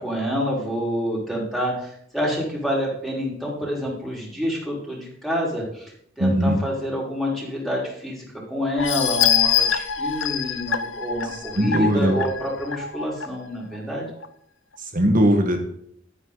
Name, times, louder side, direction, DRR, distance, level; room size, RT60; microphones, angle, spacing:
voice 1, 0.0-14.1, equal, ahead, -4 dB, 5.0 m, -28 dB
voice 2, 6.2-6.6 11.6-12.1 14.9-15.6, equal, 45° right, 4 dB, 1.9 m, -19 dB
sound 1, 8.8-13.3 13.7-13.8 14.2-14.3, left 8 dB, 75° left, 1.0 m, -24 dB
12.5 x 9.8 x 4.1 m, 0.68 s
head